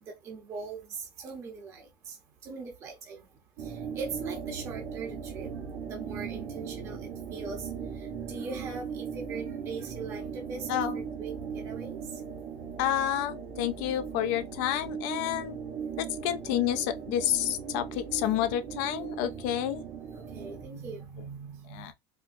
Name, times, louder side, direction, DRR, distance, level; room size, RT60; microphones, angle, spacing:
voice 1, 0.2-2.2 2.4-3.3 3.6-5.5 5.8-7.0 7.3-7.7 8.3-10.7 10.9-12.0 20.1-21.9, right 4 dB, 25° right, 0.8 m, -40 dB
sound 1, 3.6-20.7, right 7 dB, 70° right, 1.1 m, -38 dB
voice 2, 10.7-11.0 12.8-15.6 16.0-19.8 21.7-21.9, left 11 dB, 55° left, 0.4 m, -29 dB
4.3 x 2.0 x 2.5 m
cardioid pair, 170°, 12 cm